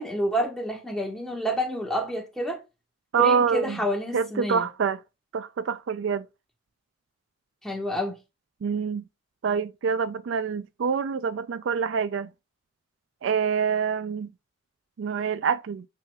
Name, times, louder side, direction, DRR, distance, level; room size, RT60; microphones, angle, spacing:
voice 1, 0.0-2.6 3.2-4.7 7.6-8.2, equal, 5° left, 1.4 m, -29 dB
voice 2, 3.1-3.8 4.1-5.0 5.3-6.2 8.6-9.0 9.4-12.3 13.2-14.3 15.0-15.8, right 6 dB, 70° right, 0.3 m, -26 dB
8.6 x 4.8 x 2.3 m
head